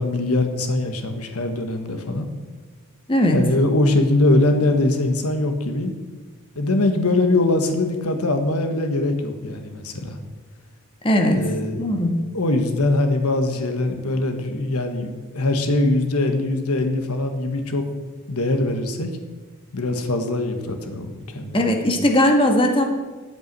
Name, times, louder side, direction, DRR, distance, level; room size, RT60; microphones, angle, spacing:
voice 1, 0.0-2.3 3.3-5.9 6.5-10.2 11.3-11.8 12.3-17.8 18.3-19.1 19.7-21.7, left 2 dB, 80° left, 6 dB, 1.4 m, -22 dB
voice 2, 11.0-11.4 11.8-12.1 21.5-22.9, left 1 dB, 25° left, 3 dB, 1.4 m, -18 dB
9.1 x 8.3 x 7.5 m, 1.3 s
head